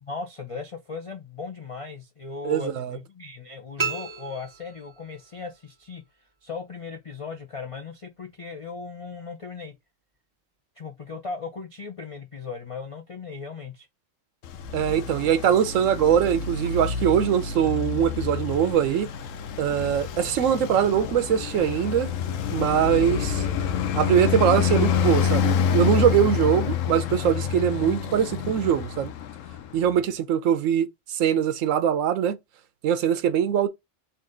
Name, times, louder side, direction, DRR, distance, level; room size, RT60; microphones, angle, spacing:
voice 1, 0.0-6.0 6.4-9.7 10.8-13.9 20.4-20.7, left 4 dB, 45° left, 0.4 m, -37 dB
voice 2, 2.4-3.0 14.7-19.1 19.6-22.1 22.5-23.5 23.9-29.1 29.7-32.4 32.8-33.7, right 9 dB, 80° right, 1.0 m, -22 dB
sound 1, 3.8-5.3, right 5 dB, 30° right, 0.7 m, -32 dB
Traffic noise roadway noise, 14.4-29.9, left 7 dB, 75° left, 1.0 m, -28 dB
4.1 x 2.6 x 3.7 m
omnidirectional pair, 1.3 m